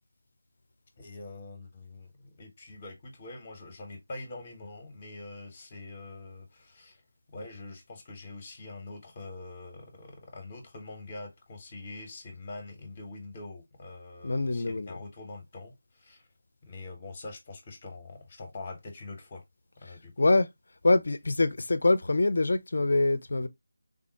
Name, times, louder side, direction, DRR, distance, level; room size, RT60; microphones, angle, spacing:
voice 1, 1.0-7.0 7.3-16.3 16.6-19.4 19.8-20.3, left 3 dB, 25° left, 0.8 m, -44 dB
voice 2, 14.2-15.0 20.2-20.5 20.8-23.5, left 2 dB, 50° left, 0.4 m, -24 dB
3.6 x 2.0 x 2.6 m
figure-of-eight pair, 160°, 0 cm